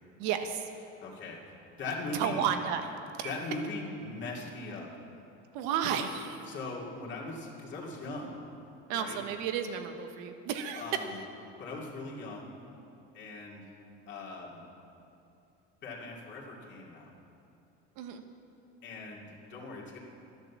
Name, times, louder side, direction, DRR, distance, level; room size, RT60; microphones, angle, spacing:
voice 1, 0.2-0.7 2.1-2.9 3.2-3.3 5.5-6.5 8.9-11.0 18.0-18.2, right 8 dB, 75° right, 7 dB, 1.3 m, -32 dB
voice 2, 1.0-2.4 3.2-4.9 6.5-8.4 8.9-9.2 10.7-11.2 11.6-12.5 13.1-13.7 14.1-14.6 15.8-17.1 18.8-20.0, left 2 dB, 35° left, -4 dB, 2.5 m, -40 dB
12.0 x 10.5 x 7.2 m, 2.7 s
cardioid pair, 140°, 31 cm